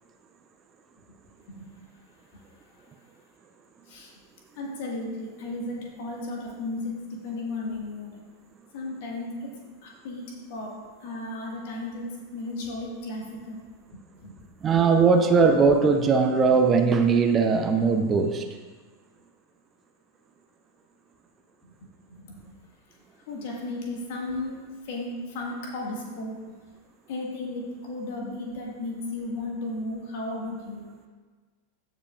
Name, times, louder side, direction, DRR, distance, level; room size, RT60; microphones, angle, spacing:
voice 1, 4.5-8.2 8.7-9.5 9.8-10.7 11.0-12.1 12.3-13.6 14.2-14.4 21.6-21.7 22.1-22.5 23.3-24.6 24.8-26.6 27.1-30.9, left 2 dB, 50° left, -1 dB, 1.7 m, -34 dB
voice 2, 14.6-18.5, right 5 dB, 25° right, 5 dB, 0.6 m, -20 dB
15.0 x 5.1 x 2.4 m, 1.4 s
figure-of-eight pair, 90°, 0 cm